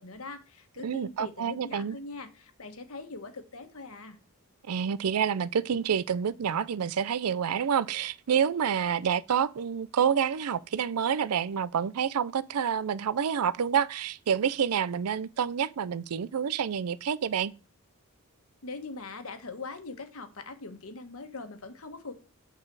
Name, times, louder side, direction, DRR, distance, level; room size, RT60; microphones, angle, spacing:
voice 1, 0.0-4.2 18.6-22.1, left 3 dB, 70° left, 1.3 m, -42 dB
voice 2, 0.8-2.0 4.7-17.5, right 7 dB, 85° right, 0.5 m, -28 dB
8.9 x 4.1 x 4.7 m
head